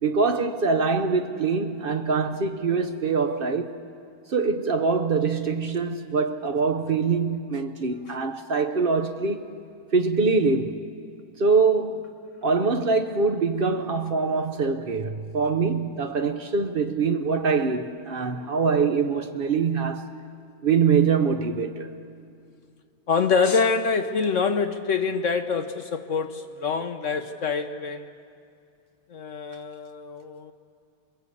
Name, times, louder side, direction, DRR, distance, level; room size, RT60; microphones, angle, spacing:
voice 1, 0.0-3.8 4.3-9.5 9.9-10.8 11.4-12.1 12.4-20.2 20.6-21.9, right 4 dB, 75° right, 0.5 m, -24 dB
voice 2, 23.1-28.1 29.1-30.5, left 5 dB, 60° left, 0.8 m, -25 dB
28.5 x 21.5 x 8.4 m
omnidirectional pair, 2.2 m